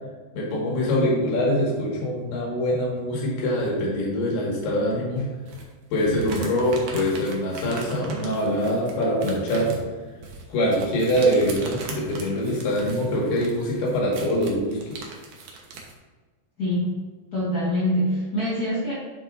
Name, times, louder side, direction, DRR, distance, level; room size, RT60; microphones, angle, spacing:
voice 1, 0.4-5.3 5.9-9.8 10.5-15.1, equal, 75° left, -3 dB, 3.8 m, -24 dB
sound 1, 5.4-15.9, right 4 dB, 75° right, 1.5 m, -39 dB
voice 2, 16.6-16.9 17.3-18.9, equal, 60° left, -9 dB, 1.0 m, -24 dB
9.5 x 7.2 x 2.6 m, 1.4 s
omnidirectional pair, 4.6 m